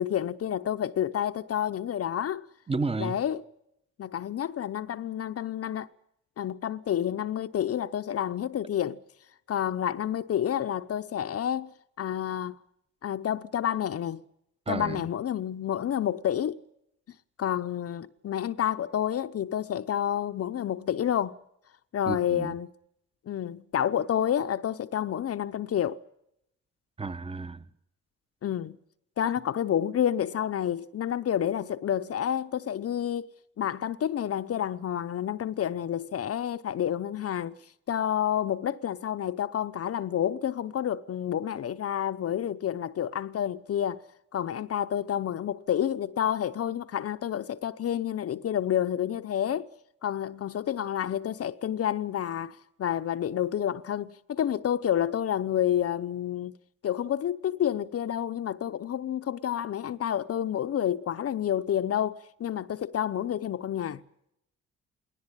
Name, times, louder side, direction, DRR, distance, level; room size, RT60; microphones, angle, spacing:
voice 1, 0.0-2.5 3.0-3.4 4.0-5.9 6.4-9.0 9.5-11.7 12.0-12.6 13.0-14.2 14.7-16.6 17.4-21.4 21.9-22.7 23.3-26.0 28.4-28.8 29.2-37.6 37.9-44.0 44.3-49.7 50.0-56.5 56.8-64.0, left 10 dB, 50° left, 0.8 m, -29 dB
voice 2, 2.7-3.2 14.7-15.0 22.1-22.5 27.0-27.6, right 4 dB, 20° right, 1.2 m, -32 dB
20.0 x 18.5 x 9.8 m
cardioid pair, 90°, 30 cm